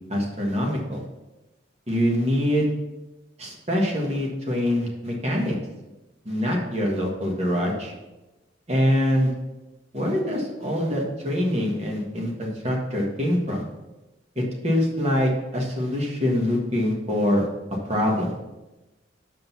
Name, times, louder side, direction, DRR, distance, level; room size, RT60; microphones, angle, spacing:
voice 1, 0.1-1.0 1.9-2.7 3.4-5.5 6.2-7.9 8.7-9.3 9.9-13.6 14.3-17.5 17.9-18.3, equal, 35° right, -1 dB, 1.6 m, -24 dB
7.6 x 5.2 x 5.8 m, 1.0 s
head